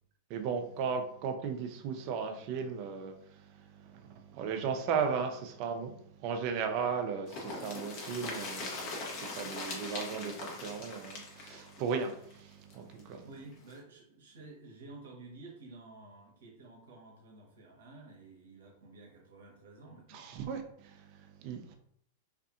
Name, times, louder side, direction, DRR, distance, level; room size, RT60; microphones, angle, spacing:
voice 1, 0.3-13.2 20.1-21.8, right 6 dB, 50° right, 0.4 m, -36 dB
sound 1, 7.3-13.0 13.3-13.4 13.7-13.8, left 2 dB, 50° left, 0.8 m, -41 dB
voice 2, 13.2-20.4, right 2 dB, 70° right, 0.8 m, -52 dB
2.5 x 2.5 x 2.5 m
hypercardioid pair, 100°, 0 cm